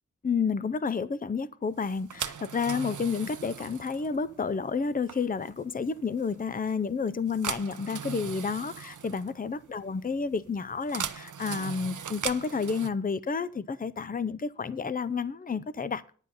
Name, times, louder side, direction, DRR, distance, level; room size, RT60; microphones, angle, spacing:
voice 1, 0.2-16.2, left 5 dB, 30° left, 0.5 m, -30 dB
sound 1, 1.8-12.9, right 7 dB, 80° right, 0.7 m, -40 dB
9.9 x 9.8 x 5.5 m
wide cardioid pair, 95°, 30 cm